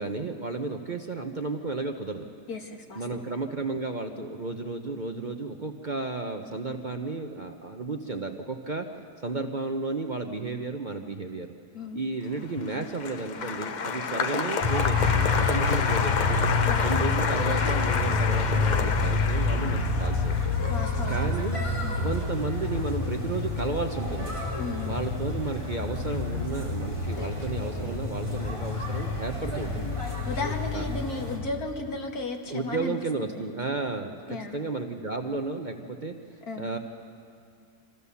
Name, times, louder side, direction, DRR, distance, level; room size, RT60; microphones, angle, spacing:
voice 1, 0.0-2.3 3.0-8.8 9.2-11.5 11.9-16.4 16.8-20.3 21.1-21.7 22.0-24.3 24.8-29.9 30.7-30.9 32.5-36.1 36.6-36.8, right 3 dB, 40° right, 4 dB, 0.8 m, -33 dB
voice 2, 2.5-3.2 11.7-12.0 16.6-16.9 20.7-22.0 24.6-25.0 30.3-33.0 33.2-33.4 34.3-34.6 36.5-36.7, left 3 dB, 70° left, 2 dB, 2.4 m, -35 dB
Applause, 12.4-22.8 23.1-23.7, left 5 dB, 50° left, 0.5 m, -30 dB
sound 1, 14.6-31.4, left 3 dB, 20° left, 3.3 m, -28 dB
25.0 x 15.5 x 7.0 m, 2.4 s
omnidirectional pair, 1.6 m